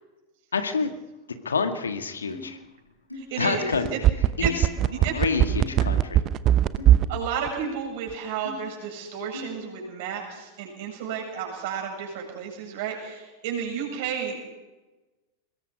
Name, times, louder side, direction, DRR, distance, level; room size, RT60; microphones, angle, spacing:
voice 1, 0.5-0.9 1.4-2.6 3.4-4.0 4.4-4.7 4.9-6.2, left 5 dB, 70° left, 8 dB, 1.9 m, -28 dB
sound 1, 2.3-2.5 3.1-3.2 3.8-3.9 4.4-4.7 5.6-5.8 6.8-6.9 7.6-7.8 8.4-8.6 9.3-9.5, left 3 dB, 90° left, 5.3 m, -38 dB
voice 2, 3.1-3.7 3.9-4.0 4.4-4.6 5.0-5.1 5.6-5.7 7.1-14.5, right 7 dB, 50° right, 1 dB, 7.9 m, -32 dB
sound 2, 3.7-7.2 7.5-7.6, right 12 dB, 35° right, 0.9 m, -19 dB
23.5 x 21.0 x 5.3 m, 1.1 s
figure-of-eight pair, 90°, 0 cm